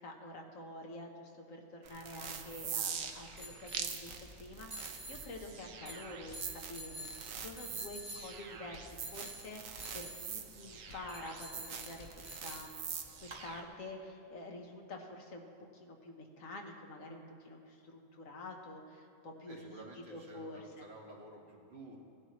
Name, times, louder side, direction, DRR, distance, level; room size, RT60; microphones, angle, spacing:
voice 1, 0.0-12.7 13.2-15.5 15.7-20.9, left 2 dB, 90° left, 2 dB, 1.6 m, -48 dB
sound 1, 1.8-13.6, right 7 dB, 80° right, 1.2 m, -44 dB
sound 2, 1.9-13.4, equal, 20° right, 1.8 m, -51 dB
sound 3, 4.1-4.4 5.0-5.4 6.1-6.6 7.3-7.7 8.5-9.0 9.7-10.0 10.7-11.2 11.7-12.3, left 2 dB, 60° left, 1.3 m, -57 dB
voice 2, 19.5-22.0, right 1 dB, 50° right, -2 dB, 1.8 m, -52 dB
17.5 x 10.5 x 3.1 m, 2.8 s
omnidirectional pair, 1.3 m